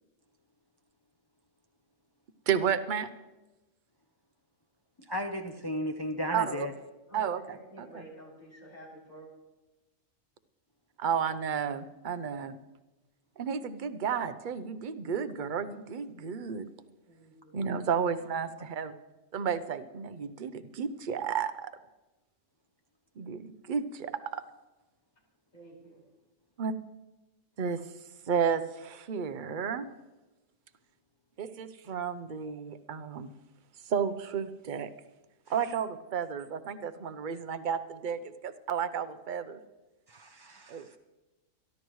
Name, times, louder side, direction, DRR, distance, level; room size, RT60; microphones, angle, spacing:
voice 1, 2.5-3.1 6.3-6.7 7.1-7.4 11.0-12.6 13.4-16.7 17.5-18.9 19.3-21.7 23.2-24.4 26.6-26.7 27.6-27.8 28.3-29.9 31.4-33.3 33.9-34.9 35.5-39.6 40.7-41.0, right 7 dB, 45° right, 11 dB, 0.8 m, -32 dB
voice 2, 5.1-6.7 40.1-41.0, equal, 25° left, 4 dB, 0.7 m, -35 dB
voice 3, 7.1-9.3 17.1-17.9 25.5-26.0, right 1 dB, 85° left, -4 dB, 5.7 m, -51 dB
23.5 x 12.0 x 3.1 m, 1.1 s
omnidirectional pair, 1.4 m